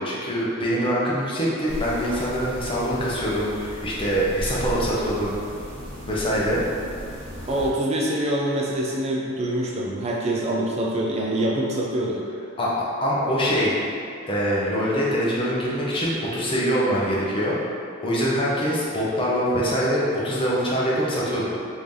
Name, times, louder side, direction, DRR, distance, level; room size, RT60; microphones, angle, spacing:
voice 1, 0.0-5.4 6.1-6.6 12.6-12.7 13.0-13.8 14.3-17.6 18.0-21.5, equal, 25° left, -6 dB, 0.7 m, -24 dB
sound 1, 1.7-7.7, equal, 85° right, 0.8 m, -35 dB
voice 2, 7.5-12.2, right 1 dB, 30° right, -3 dB, 0.4 m, -25 dB
3.2 x 2.7 x 3.6 m, 2.4 s
head